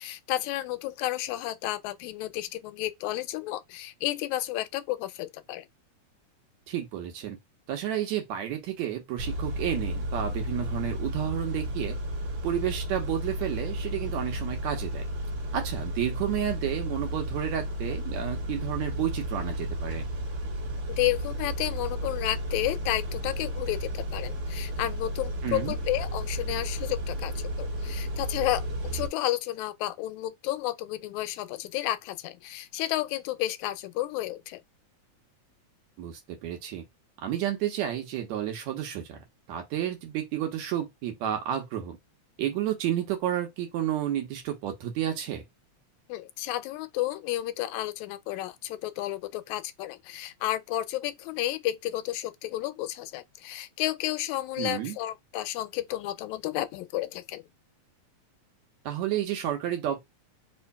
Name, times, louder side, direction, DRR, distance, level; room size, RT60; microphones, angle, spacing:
voice 1, 0.0-5.7 20.9-28.6 28.9-34.6 46.1-57.4, left 15 dB, 80° left, 1.9 m, -32 dB
voice 2, 6.7-7.4 7.7-12.0 12.4-15.0 15.5-20.1 25.4-25.7 36.0-36.8 37.2-42.0 42.4-45.4 54.6-55.0 58.9-60.0, right 11 dB, 75° right, 2.2 m, -31 dB
Car / Idling / Accelerating revving vroom, 9.2-29.1, equal, 45° right, 2.1 m, -33 dB
4.9 x 2.6 x 2.2 m
omnidirectional pair, 3.4 m